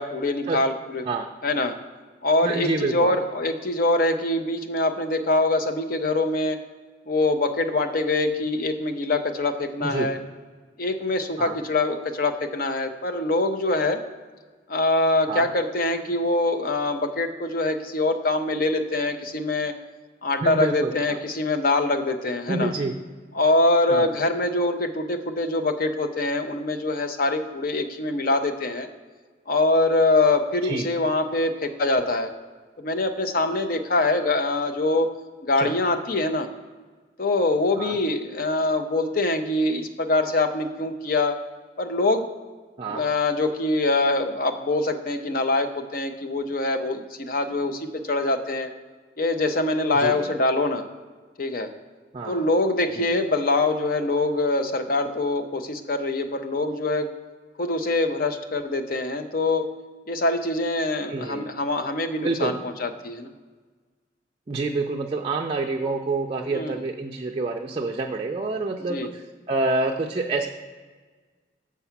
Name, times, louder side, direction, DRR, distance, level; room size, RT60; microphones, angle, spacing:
voice 1, 0.0-1.0 1.4-1.8 2.2-6.6 7.1-10.2 10.8-14.0 14.7-19.7 20.2-22.7 23.3-28.9 29.5-32.3 32.8-35.1 35.4-36.5 37.2-41.4 41.8-42.3 42.9-48.7 49.2-50.9 51.4-51.7 52.3-57.1 57.6-59.7 60.1-63.3 66.5-66.8 68.9-69.1, left 2 dB, 50° left, 7 dB, 0.6 m, -24 dB
voice 2, 2.4-3.2 9.8-10.1 11.4-11.6 15.3-15.5 20.4-21.2 22.5-22.9 23.9-24.1 30.6-30.9 35.6-35.7 37.8-38.0 42.8-43.0 49.9-50.3 52.1-52.4 53.0-53.1 61.1-61.5 62.2-62.6 64.5-70.5, right 3 dB, 30° right, 1 dB, 0.4 m, -27 dB
6.8 x 4.7 x 5.8 m, 1.4 s
head